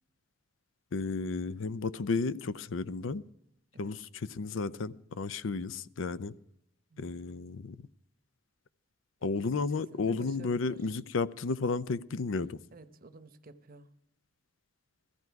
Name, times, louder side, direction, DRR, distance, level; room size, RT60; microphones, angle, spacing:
voice 1, 0.9-3.2 3.8-6.3 7.0-7.8 9.2-12.6, left 4 dB, 75° left, 0.5 m, -33 dB
voice 2, 9.2-10.9 12.7-13.9, right 3 dB, 45° right, 0.8 m, -52 dB
16.5 x 14.0 x 4.7 m
head